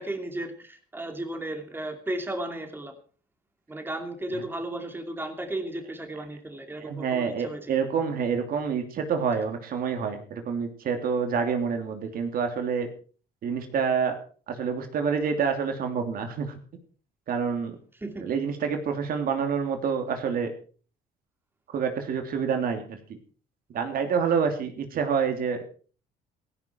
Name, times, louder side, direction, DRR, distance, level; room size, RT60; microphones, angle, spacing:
voice 1, 0.0-2.9 3.7-7.7 17.9-18.3, right 1 dB, 10° right, 5 dB, 2.8 m, -34 dB
voice 2, 6.8-12.9 13.4-14.2 14.5-16.6 17.3-17.8 18.2-20.5 21.7-23.0 23.7-25.7, right 6 dB, 60° right, 5 dB, 3.1 m, -27 dB
16.5 x 15.5 x 4.6 m, 0.41 s
cardioid pair, 110°, 17 cm